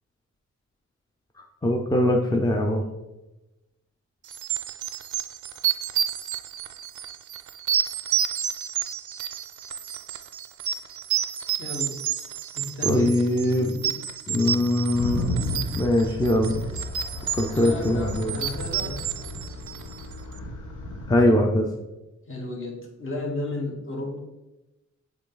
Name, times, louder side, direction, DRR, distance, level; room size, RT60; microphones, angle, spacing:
voice 1, 1.6-2.8 12.8-13.8 14.3-15.3 15.7-16.6 17.3-18.3 21.1-21.7, left 1 dB, 15° left, 1 dB, 0.5 m, -22 dB
sound 1, 4.3-20.1, right 9 dB, 80° right, 0.5 m, -30 dB
voice 2, 11.6-12.0 12.5-13.2 13.6-14.0 17.5-19.0 22.3-24.2, left 2 dB, 45° left, 0 dB, 1.4 m, -33 dB
sound 2, 14.9-21.2, left 1 dB, 90° left, 1.1 m, -33 dB
7.9 x 4.0 x 3.9 m, 1.0 s
wide cardioid pair, 155°, 29 cm